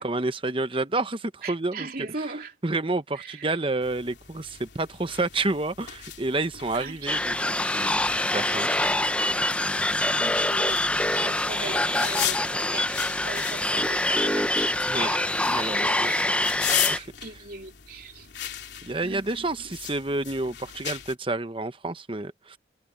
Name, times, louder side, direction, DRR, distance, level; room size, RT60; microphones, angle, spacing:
voice 1, 0.0-1.9 2.6-8.9 14.9-15.1 15.5-16.1 16.9-17.1 18.8-22.6, right 2 dB, 30° right, 1.0 m, -29 dB
voice 2, 1.4-2.5 3.1-3.6 6.7-7.5 10.0-15.3 15.6-16.4 16.7-18.3 19.0-19.8 20.7-20.8, right 3 dB, 50° right, 3.5 m, -39 dB
sound 1, 3.8-21.1, left 11 dB, 70° left, 3.1 m, -37 dB
sound 2, 7.1-17.0, left 1 dB, 5° left, 0.6 m, -25 dB
head